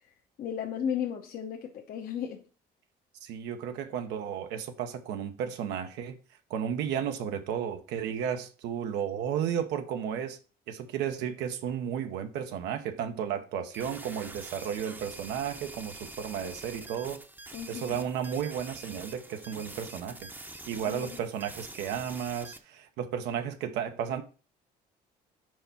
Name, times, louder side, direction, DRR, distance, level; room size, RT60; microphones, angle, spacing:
voice 1, 0.4-2.4 17.5-18.0 20.9-21.2, left 8 dB, 60° left, 0.9 m, -34 dB
voice 2, 3.2-6.2 6.5-10.4 10.7-17.2 17.7-24.2, right 8 dB, 85° right, 0.8 m, -33 dB
sound 1, 13.7-22.6, right 2 dB, 10° right, 0.7 m, -45 dB
4.7 x 4.5 x 5.4 m
cardioid pair, 110°, 17 cm